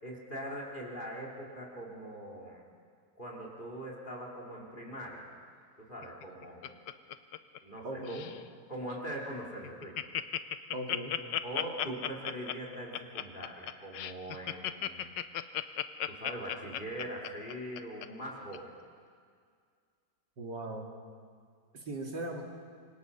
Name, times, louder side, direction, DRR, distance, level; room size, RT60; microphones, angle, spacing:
voice 1, 0.0-2.6 3.2-5.3 5.8-6.8 7.6-8.3 8.7-10.1 11.4-15.2 16.1-18.7, right 1 dB, 25° left, -2 dB, 3.6 m, -42 dB
Laughter, 6.0-7.8 8.1-8.4 8.9-9.0 9.3-9.4 9.6-18.1 18.5-18.6, left 11 dB, 80° left, 1.4 m, -35 dB
voice 2, 7.8-8.3 10.7-11.2 20.4-20.9 21.7-22.4, right 1 dB, 70° right, 0 dB, 3.0 m, -38 dB
27.0 x 24.5 x 5.6 m, 2.1 s
omnidirectional pair, 1.9 m